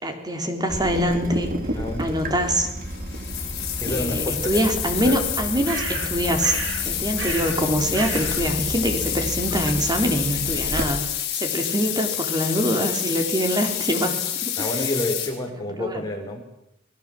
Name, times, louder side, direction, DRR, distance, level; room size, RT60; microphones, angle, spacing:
voice 1, 0.0-1.5 2.0-2.7 3.9-6.6 6.9-11.0 11.3-14.7 15.8-16.0, equal, 20° right, 5 dB, 3.7 m, -24 dB
Water tap faucet / Drip, 0.7-10.8, right 1 dB, 45° right, 3.5 m, -32 dB
voice 2, 1.7-2.2 3.8-4.6 5.0-5.2 14.6-16.4, left 1 dB, 20° left, 2 dB, 5.3 m, -29 dB
sound 1, 2.9-15.3, left 11 dB, 60° left, 6.4 m, -28 dB
sound 2, 5.6-6.9 7.2-7.6 7.9-8.4, right 4 dB, 75° right, 3.5 m, -32 dB
29.5 x 20.0 x 7.7 m, 0.85 s
head